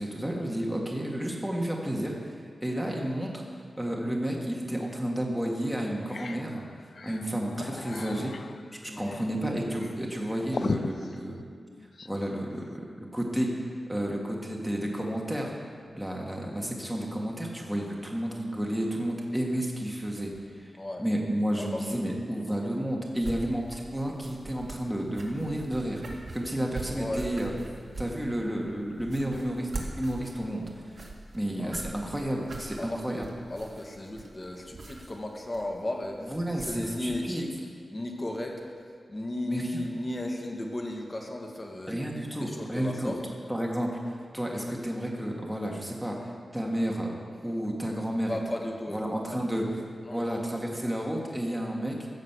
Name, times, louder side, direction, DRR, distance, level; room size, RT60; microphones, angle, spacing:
voice 1, 0.0-3.4 3.8-8.5 8.8-11.4 12.0-12.6 13.0-15.5 15.9-20.7 21.0-27.5 28.0-31.1 31.3-33.3 36.3-37.4 39.5-39.8 41.9-43.1 43.5-47.1 47.4-48.3 48.9-49.6 50.1-52.0, right 1 dB, 5° right, -1 dB, 1.8 m, -31 dB
sound 1, 4.8-5.0 5.5-5.6 5.9-12.2, left 4 dB, 65° left, 0.5 m, -38 dB
voice 2, 8.9-9.2 20.8-21.0 21.6-22.1 27.0-27.3 31.6-31.8 32.8-37.5 37.9-38.6 39.1-43.2 48.3-49.5 50.0-50.4, left 1 dB, 30° left, 1 dB, 1.9 m, -35 dB
sound 2, 23.1-37.2, right 2 dB, 55° right, 2.1 m, -43 dB
14.5 x 6.6 x 8.0 m, 2.1 s
wide cardioid pair, 90°, 0 cm